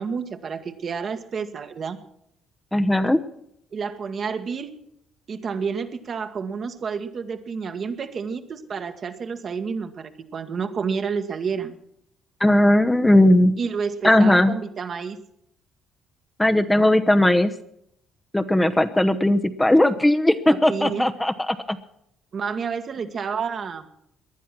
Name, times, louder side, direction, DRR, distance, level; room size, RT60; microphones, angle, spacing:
voice 1, 0.0-2.0 3.7-4.7 5.3-11.8 13.6-15.2 20.5-21.1 22.3-23.9, right 5 dB, 50° right, 6 dB, 1.6 m, -29 dB
voice 2, 2.7-3.2 12.4-13.6 14.0-14.5 16.4-17.5 18.3-21.8, left 1 dB, 10° left, 8 dB, 1.0 m, -18 dB
18.5 x 11.0 x 6.0 m, 0.74 s
supercardioid pair, 60°, 0 cm